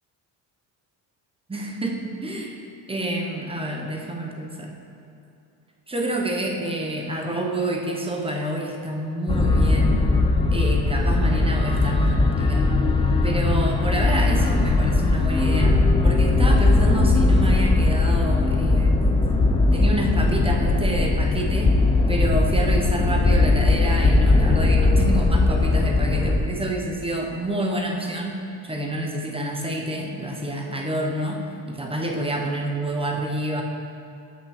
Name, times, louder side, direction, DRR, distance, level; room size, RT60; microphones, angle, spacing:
voice 1, 1.5-2.6 2.9-4.8 5.9-10.1 10.5-12.7 13.2-19.2 19.7-21.8 22.1-33.6, right 1 dB, 15° right, 1 dB, 0.7 m, -28 dB
sound 1, 9.3-26.4, left 3 dB, 15° left, 0.4 m, -19 dB
6.0 x 5.7 x 6.4 m, 2.7 s
cardioid pair, 140°, 43 cm